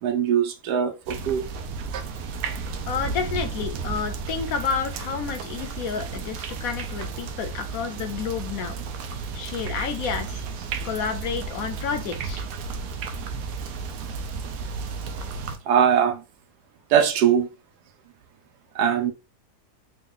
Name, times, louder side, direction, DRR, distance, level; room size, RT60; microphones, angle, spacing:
voice 1, 0.0-1.4 1.9-2.0 15.7-16.2 16.9-17.5 18.7-19.1, right 8 dB, 85° right, 1.2 m, -21 dB
sound 1, 1.1-15.6, right 4 dB, 70° right, 0.9 m, -33 dB
voice 2, 2.9-8.8 9.3-10.4 10.8-12.4, left 6 dB, 70° left, 1.0 m, -30 dB
3.6 x 2.3 x 3.7 m
omnidirectional pair, 1.7 m